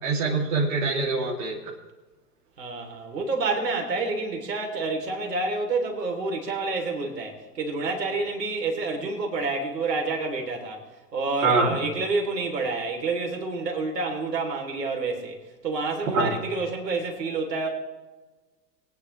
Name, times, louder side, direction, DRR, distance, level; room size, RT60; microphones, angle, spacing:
voice 1, 0.0-1.6 11.4-11.8 16.1-16.3, right 3 dB, 55° right, -2 dB, 2.9 m, -24 dB
voice 2, 2.6-10.8 11.1-17.7, right 3 dB, 75° right, 2 dB, 3.4 m, -28 dB
23.5 x 9.8 x 3.3 m, 1.2 s
hypercardioid pair, 105°, 50 cm